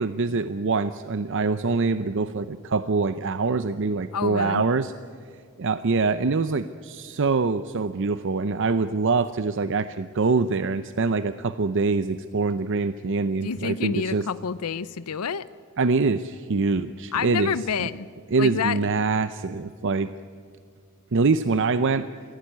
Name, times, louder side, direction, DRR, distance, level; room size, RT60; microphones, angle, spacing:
voice 1, 0.0-4.9 5.6-14.3 15.8-17.9 18.3-20.1 21.1-22.1, right 4 dB, 55° right, 12 dB, 0.6 m, -24 dB
voice 2, 4.1-4.6 13.4-15.5 17.1-18.1 18.4-18.8, left 6 dB, 85° left, 16 dB, 0.6 m, -28 dB
23.0 x 16.5 x 9.6 m, 2.2 s
head